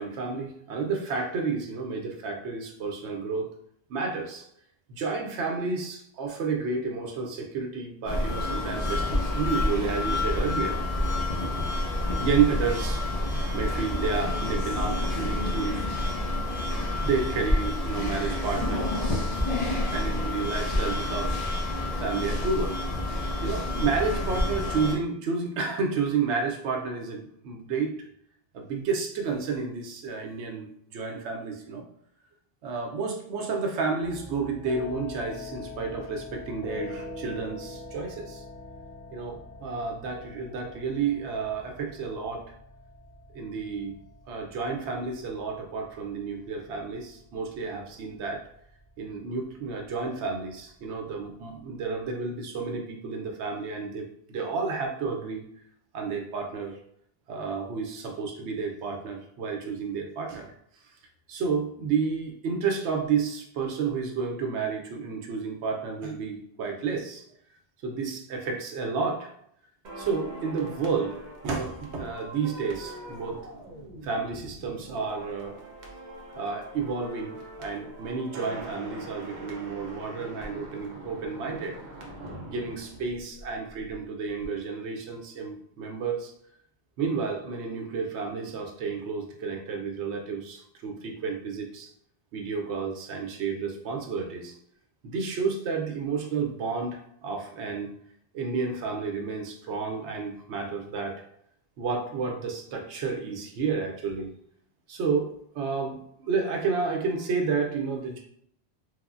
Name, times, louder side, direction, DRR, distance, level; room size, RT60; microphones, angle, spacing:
voice 1, 0.0-3.5 3.9-4.4 4.9-10.8 12.2-13.0 13.5-15.9 17.0-18.9 19.9-21.4 22.0-22.8 23.1-28.1 28.5-31.8 32.6-38.4 39.1-42.5 43.3-44.0 44.3-48.5 49.0-55.4 55.9-56.8 57.3-60.5 61.3-67.2 67.8-69.3 70.0-73.4 74.0-75.6 76.4-81.7 82.4-86.3 87.0-91.9 92.3-94.5 95.0-97.9 98.3-101.2 101.8-104.3 104.9-108.2, right 5 dB, 90° right, 2 dB, 0.9 m, -31 dB
sound 1, 8.1-25.0, left 1 dB, 35° left, 0.7 m, -28 dB
sound 2, 34.0-52.0, left 2 dB, 80° left, 1.1 m, -44 dB
sound 3, 69.8-84.0 84.2-84.5, right 1 dB, 50° right, 0.6 m, -43 dB
3.2 x 2.1 x 2.4 m, 0.68 s
omnidirectional pair, 1.1 m